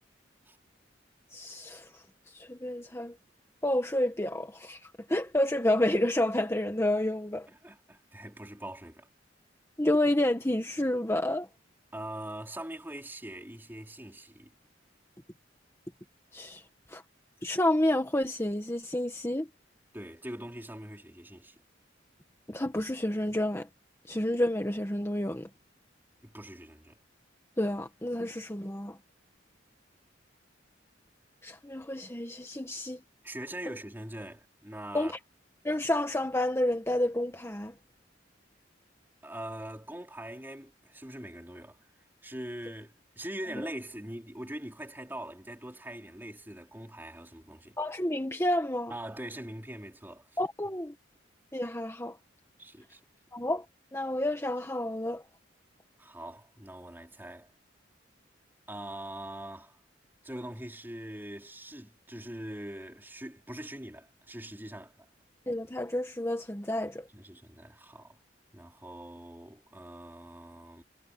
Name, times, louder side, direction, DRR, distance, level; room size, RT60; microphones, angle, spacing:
voice 1, 1.3-2.0 2.3-3.1 3.6-7.5 9.8-11.5 16.3-16.6 16.9-17.0 17.4-19.5 22.5-23.7 24.1-25.5 27.6-29.0 31.4-33.0 34.9-35.2 35.6-37.7 47.8-48.9 50.4-50.9 51.5-52.2 53.3-53.6 53.9-55.2 65.5-67.0, left 1 dB, 15° left, 1.7 m, -29 dB
voice 2, 7.5-9.1 11.9-14.5 19.9-21.6 26.2-27.0 33.2-35.2 39.2-41.8 42.2-47.8 48.9-50.3 52.6-53.0 56.0-57.5 58.7-59.8 60.2-65.1 67.1-68.2 68.5-70.8, right 1 dB, 10° right, 3.6 m, -42 dB
head